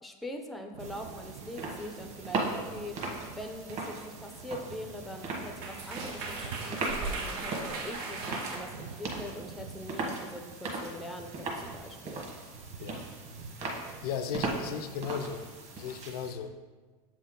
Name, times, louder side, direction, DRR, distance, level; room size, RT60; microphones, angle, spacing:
voice 1, 0.0-3.0 3.4-12.3, left 1 dB, ahead, 5 dB, 0.5 m, -43 dB
sound 1, 0.7-16.5, right 6 dB, 90° right, 0.5 m, -49 dB
sound 2, 0.8-16.3, right 3 dB, 35° right, 1.4 m, -39 dB
sound 3, 3.3-3.5 5.0-5.1 5.3-8.6, right 3 dB, 60° right, 1.7 m, -38 dB
voice 2, 14.0-15.4 15.7-16.5, left 7 dB, 85° left, 10 dB, 0.5 m, -36 dB
7.2 x 4.4 x 3.8 m, 1.4 s
supercardioid pair, 125°, 19 cm